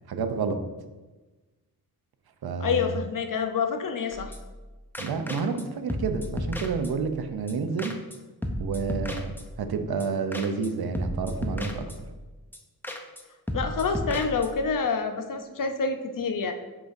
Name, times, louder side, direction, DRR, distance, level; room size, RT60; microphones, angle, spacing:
voice 1, 0.1-0.6 2.4-2.9 5.0-8.0 8.6-12.1, right 5 dB, 75° right, 7 dB, 0.7 m, -30 dB
voice 2, 2.6-4.3 13.5-16.5, left 5 dB, 60° left, 7 dB, 0.7 m, -27 dB
sound 1, 4.1-4.7 4.9-5.6 5.9-7.2 7.5-7.6 7.8-8.2 8.4-9.7 10.0-10.1 10.3-10.7 10.9-12.2 12.5-12.6 12.8-13.2 13.5-14.7, equal, 5° left, 0.7 m, -34 dB
7.4 x 5.2 x 2.6 m, 1.2 s
cardioid pair, 70°, 38 cm